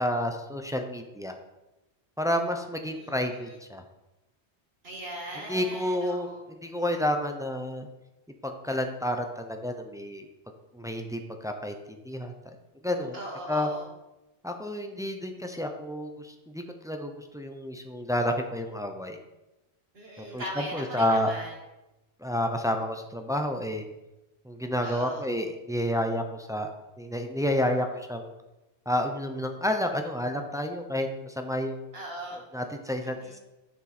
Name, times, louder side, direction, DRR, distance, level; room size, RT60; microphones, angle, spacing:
voice 1, 0.0-1.3 2.2-3.8 5.5-7.9 8.4-10.3 10.7-12.3 12.8-13.2 13.5-13.7 14.4-19.2 20.2-21.3 22.2-23.8 24.4-26.7 27.0-28.3 28.9-31.9 32.5-33.2, left 1 dB, 5° right, 4 dB, 0.4 m, -30 dB
voice 2, 2.9-3.6 4.8-6.4 13.1-13.9 19.9-21.5 24.8-25.2 31.9-32.4 33.0-33.4, right 1 dB, 60° right, -1 dB, 2.0 m, -39 dB
7.2 x 7.2 x 4.2 m, 1.0 s
omnidirectional pair, 1.2 m